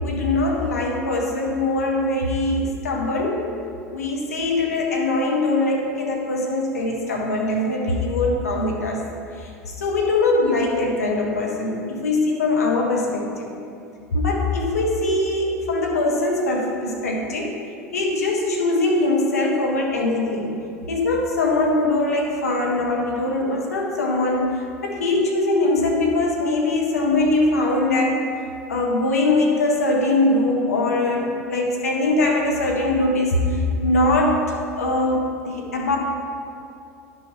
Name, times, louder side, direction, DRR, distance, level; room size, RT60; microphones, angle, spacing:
voice 1, 0.0-3.4 3.9-9.0 9.4-13.5 14.1-17.5 17.9-20.5 20.9-28.2 28.7-34.4 34.7-36.0, left 2 dB, 75° left, -1 dB, 1.2 m, -22 dB
10.5 x 6.3 x 3.5 m, 2.6 s
figure-of-eight pair, 75°, 8 cm